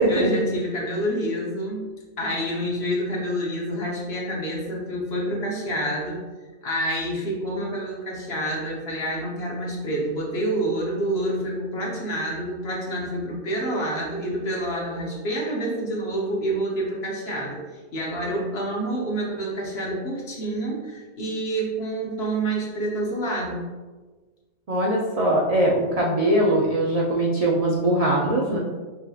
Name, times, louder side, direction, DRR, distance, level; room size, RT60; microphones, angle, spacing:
voice 1, 0.1-1.9 2.2-6.2 6.6-17.6 17.9-23.7, right 1 dB, 55° left, -3 dB, 1.2 m, -28 dB
voice 2, 24.7-28.6, right 1 dB, 55° right, -3 dB, 0.4 m, -21 dB
5.7 x 2.7 x 2.4 m, 1.3 s
omnidirectional pair, 1.3 m